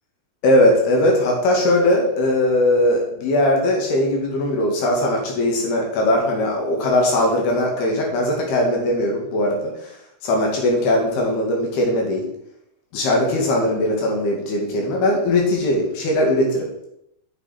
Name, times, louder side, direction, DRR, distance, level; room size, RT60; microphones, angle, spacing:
voice 1, 0.4-9.9 10.2-12.3 12.9-16.7, left 1 dB, 80° left, 0 dB, 4.3 m, -19 dB
7.8 x 6.8 x 5.9 m, 0.77 s
omnidirectional pair, 4.4 m